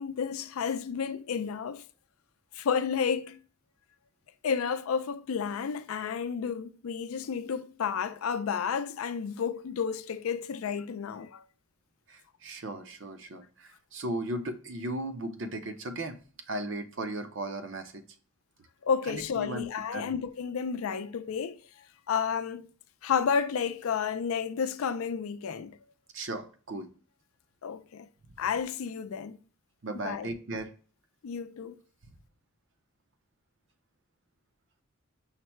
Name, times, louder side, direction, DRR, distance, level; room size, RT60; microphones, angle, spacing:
voice 1, 0.0-1.8 2.5-3.4 4.4-11.4 18.8-21.6 22.1-22.7 23.0-25.8 27.6-28.1 28.4-29.4 29.9-30.3 31.2-31.8, left 6 dB, 85° left, 0.4 m, -31 dB
voice 2, 12.1-16.2 16.5-18.0 19.1-19.7 19.9-20.1 26.1-26.9 29.8-30.7, right 1 dB, 60° right, 0.7 m, -36 dB
5.7 x 2.1 x 4.3 m
head